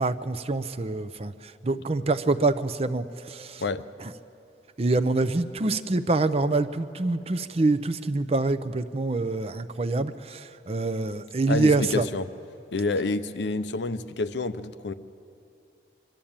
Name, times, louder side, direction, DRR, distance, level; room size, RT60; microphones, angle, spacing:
voice 1, 0.0-3.6 4.0-4.1 4.8-12.0, right 2 dB, 35° right, 11 dB, 0.5 m, -26 dB
voice 2, 11.5-12.3 12.7-14.9, left 3 dB, 85° left, 12 dB, 0.7 m, -28 dB
23.5 x 13.0 x 8.7 m, 2.6 s
head